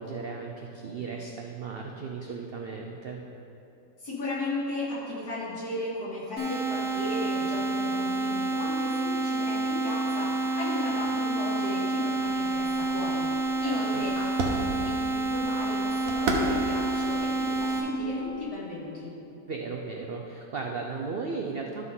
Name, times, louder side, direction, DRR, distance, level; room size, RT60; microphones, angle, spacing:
voice 1, 0.0-3.2 13.6-14.0 19.5-21.8, right 4 dB, 80° right, 1 dB, 0.5 m, -36 dB
voice 2, 4.0-19.1, left 2 dB, 65° left, -9 dB, 3.0 m, -36 dB
sound 1, 6.4-17.8, right 2 dB, 45° right, 1.9 m, -28 dB
sound 2, 12.2-18.5, right 2 dB, 60° right, 1.3 m, -36 dB
12.0 x 6.1 x 3.7 m, 2.8 s
omnidirectional pair, 1.7 m